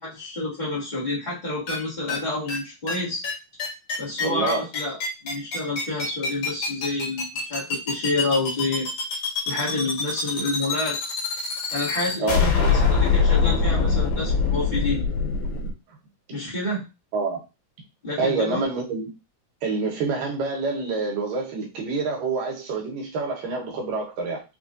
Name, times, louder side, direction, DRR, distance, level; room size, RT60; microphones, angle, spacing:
voice 1, 0.0-3.2 4.0-5.0 5.2-8.9 9.4-11.0 11.7-15.0 16.3-16.8 18.0-18.6, left 2 dB, 35° left, -8 dB, 0.7 m, -28 dB
sound 1, 1.7-1.8 2.1-2.2 2.5-2.6 2.9-3.0 3.2-3.3 3.6-15.7, left 5 dB, 60° left, 2.5 m, -23 dB
voice 2, 4.2-4.7 12.2-12.8 17.1-17.4 18.2-19.1 19.6-24.4, right 4 dB, 80° right, -1 dB, 2.8 m, -27 dB
5.9 x 2.5 x 2.5 m, 0.28 s
omnidirectional pair, 3.8 m